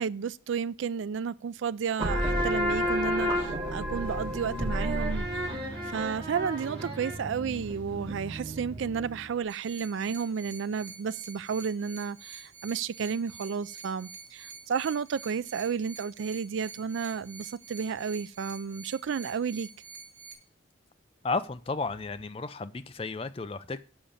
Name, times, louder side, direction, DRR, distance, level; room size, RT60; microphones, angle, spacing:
voice 1, 0.0-19.7, right 6 dB, 75° right, 0.4 m, -32 dB
sound 1, 2.0-9.3, equal, 30° right, 2.2 m, -31 dB
sound 2, 9.5-20.3, right 5 dB, 55° right, 1.8 m, -47 dB
voice 2, 21.2-23.8, left 3 dB, 30° left, 0.4 m, -33 dB
7.0 x 5.2 x 7.2 m
head